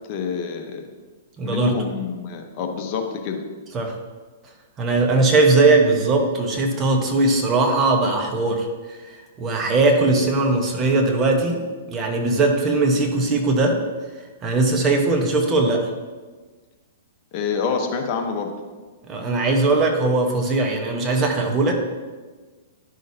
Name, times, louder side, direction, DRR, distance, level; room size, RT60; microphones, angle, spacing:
voice 1, 0.1-0.8 1.4-3.4 17.3-18.5, left 5 dB, 40° left, 4 dB, 1.0 m, -27 dB
voice 2, 1.4-1.8 3.7-3.9 4.8-11.6 11.9-13.8 14.4-15.9 19.1-21.7, right 3 dB, 25° right, 2 dB, 1.1 m, -20 dB
11.0 x 6.3 x 2.8 m, 1.3 s
hypercardioid pair, 135°, 0 cm